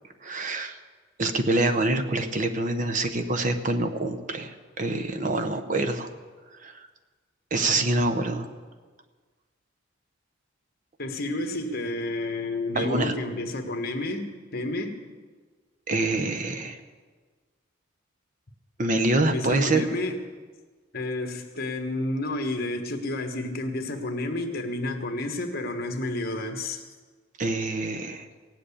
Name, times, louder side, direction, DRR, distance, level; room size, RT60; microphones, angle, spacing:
voice 1, 0.2-0.8 1.2-6.1 6.6-6.9 7.5-8.5 12.7-13.2 15.9-16.8 18.8-19.9 27.4-28.3, right 2 dB, 40° right, 8 dB, 0.9 m, -26 dB
voice 2, 11.0-15.0 19.2-20.2 20.9-26.9, left 2 dB, 50° left, 5 dB, 1.4 m, -30 dB
17.5 x 7.8 x 8.5 m, 1.4 s
head